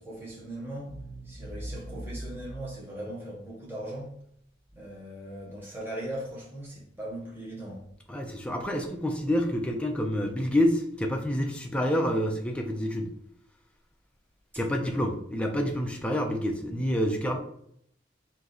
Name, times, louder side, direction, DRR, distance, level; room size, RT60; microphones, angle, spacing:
voice 1, 0.0-4.2 4.7-7.8 14.8-15.1, right 1 dB, 10° right, 1.1 m, -38 dB
voice 2, 8.1-13.1 14.6-17.4, equal, 5° left, 0.5 m, -28 dB
4.5 x 2.8 x 3.9 m
head